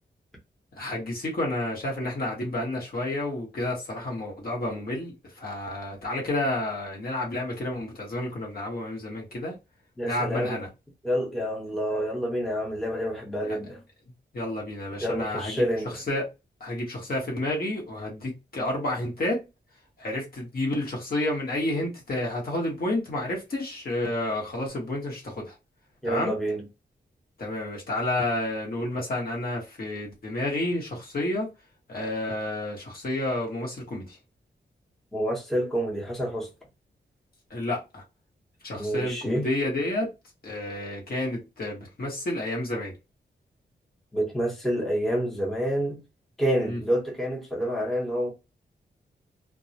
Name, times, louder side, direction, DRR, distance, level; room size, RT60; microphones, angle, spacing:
voice 1, 0.8-9.6 10.0-10.7 13.5-13.6 14.3-15.7 15.9-16.2 16.6-19.5 20.0-25.6 26.0-26.3 27.4-31.5 31.9-34.2 37.5-38.0 38.6-40.1 40.4-42.9 46.6-46.8, left 1 dB, 55° left, 1.0 m, -30 dB
voice 2, 10.0-10.6 11.0-13.8 15.0-16.0 26.0-26.6 35.1-36.5 38.7-39.5 44.1-46.0 46.4-48.3, equal, ahead, 0.7 m, -28 dB
2.2 x 2.1 x 2.7 m
wide cardioid pair, 160°, 19 cm